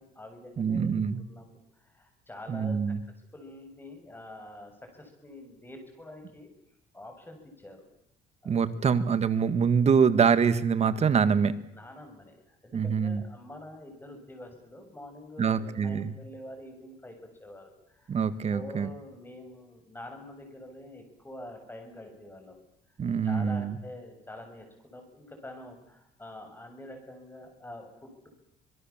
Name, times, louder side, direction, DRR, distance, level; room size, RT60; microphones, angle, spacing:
voice 1, 0.0-6.5 6.9-7.8 8.4-9.0 11.7-18.3 18.5-22.6 23.2-28.3, left 1 dB, 10° left, 5 dB, 7.5 m, -46 dB
voice 2, 0.6-1.2 2.5-3.0 8.4-11.5 12.7-13.2 15.4-16.1 18.1-18.9 23.0-23.8, right 6 dB, 40° right, 13 dB, 1.7 m, -25 dB
25.5 x 21.5 x 7.4 m, 0.80 s
cardioid pair, 110°, 17 cm